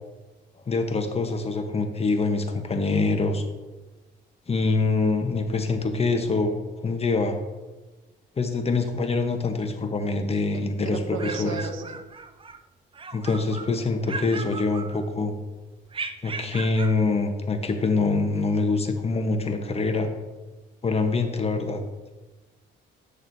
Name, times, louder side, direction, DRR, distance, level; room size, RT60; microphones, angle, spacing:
voice 1, 0.7-3.4 4.5-6.5 6.8-7.4 8.4-11.6 13.1-15.3 16.2-20.1 20.8-21.8, left 3 dB, 30° left, 6 dB, 0.9 m, -25 dB
voice 2, 10.5-12.0, right 6 dB, 80° right, 8 dB, 0.8 m, -35 dB
sound 1, 10.9-12.6 12.9-13.7 14.1-15.3 15.9-17.0, right 4 dB, 25° right, 0.5 m, -37 dB
8.9 x 6.3 x 2.7 m, 1.2 s
cardioid pair, 90°, 20 cm